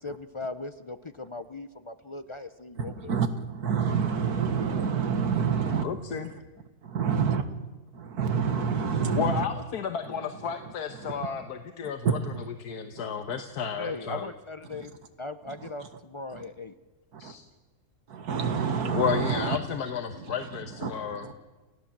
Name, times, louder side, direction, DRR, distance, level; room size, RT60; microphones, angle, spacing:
voice 1, 0.0-3.1 13.8-14.9 15.2-16.7, left 2 dB, 45° left, 11 dB, 0.3 m, -38 dB
voice 2, 2.8-5.8 6.8-7.4 7.9-9.4 11.0-11.3 12.0-12.4 15.6-15.7 16.3-16.4 17.2-17.3 18.1-19.6 20.8-21.3, right 6 dB, 80° right, 9 dB, 2.0 m, -28 dB
voice 3, 5.8-6.3 9.1-14.3 17.2-17.4 18.9-21.3, left 7 dB, 90° left, 7 dB, 1.6 m, -32 dB
29.5 x 15.5 x 7.4 m, 1.2 s
omnidirectional pair, 1.6 m